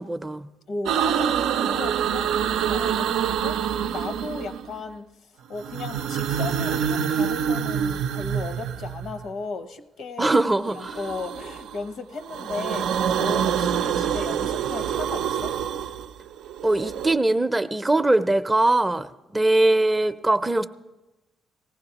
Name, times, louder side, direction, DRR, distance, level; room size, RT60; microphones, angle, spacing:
voice 1, 0.0-0.5 10.2-11.0 16.6-20.7, right 2 dB, 15° right, 10 dB, 0.5 m, -21 dB
voice 2, 0.7-5.0 5.5-10.4 10.8-15.5, left 3 dB, 70° left, 7 dB, 0.9 m, -35 dB
sound 1, 0.9-4.8 5.5-9.3 10.6-11.8 12.2-17.2, right 8 dB, 85° right, 0.4 m, -26 dB
19.0 x 15.0 x 2.9 m, 1.1 s
cardioid pair, 90°, 0 cm